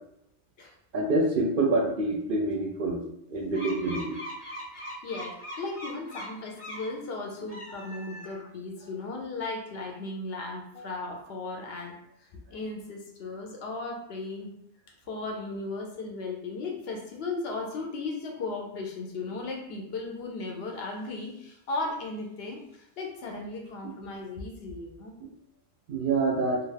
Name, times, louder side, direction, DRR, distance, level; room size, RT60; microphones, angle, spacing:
voice 1, 0.9-3.0 3.3-4.1 25.9-26.6, right 2 dB, 60° right, 0 dB, 0.6 m, -26 dB
sound 1, 3.5-7.0 7.4-8.6, equal, 35° left, 0.6 m, -41 dB
voice 2, 5.0-14.5 15.1-25.1, left 3 dB, 65° left, 1 dB, 0.8 m, -36 dB
2.4 x 2.4 x 3.2 m, 0.75 s
omnidirectional pair, 1.2 m